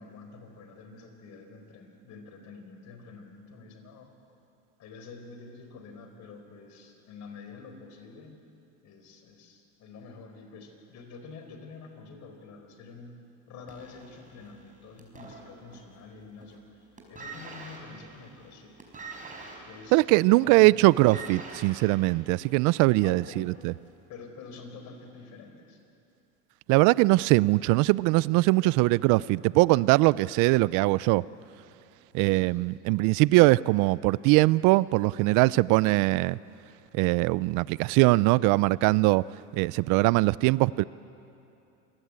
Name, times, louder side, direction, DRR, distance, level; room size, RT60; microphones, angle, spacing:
voice 1, 0.0-4.1 4.8-8.4 8.8-13.2 13.5-18.7 19.7-20.0 20.3-20.9 23.0-23.5 24.1-25.8 28.6-28.8 32.2-32.6, left 4 dB, 50° left, 6 dB, 4.5 m, -47 dB
sound 1, 13.7-16.0 16.3-16.7 17.0-22.9 23.8-23.9, right 3 dB, 20° right, 5.2 m, -45 dB
voice 2, 19.9-23.7 26.7-31.2 32.1-36.4 36.9-39.2 39.5-40.8, right 21 dB, 55° right, 21 dB, 0.5 m, -21 dB
27.0 x 18.0 x 8.8 m, 2.7 s
supercardioid pair, 110°, 36 cm